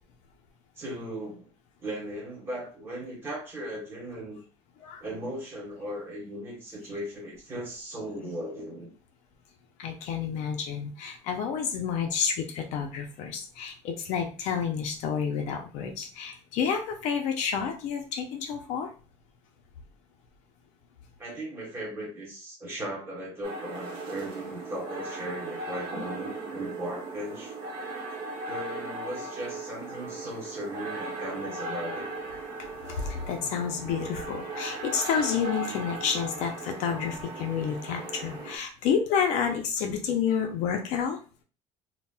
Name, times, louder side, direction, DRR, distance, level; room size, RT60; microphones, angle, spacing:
voice 1, 0.8-1.5 1.8-4.4 5.0-8.9 21.2-27.5 28.5-32.1, right 1 dB, 20° right, -3 dB, 1.1 m, -37 dB
voice 2, 9.8-18.9 32.9-41.2, left 7 dB, 65° left, 3 dB, 0.5 m, -29 dB
sound 1, 23.4-38.6, right 2 dB, 40° right, 0.8 m, -38 dB
3.9 x 2.0 x 2.2 m, 0.36 s
cardioid pair, 175°, 13 cm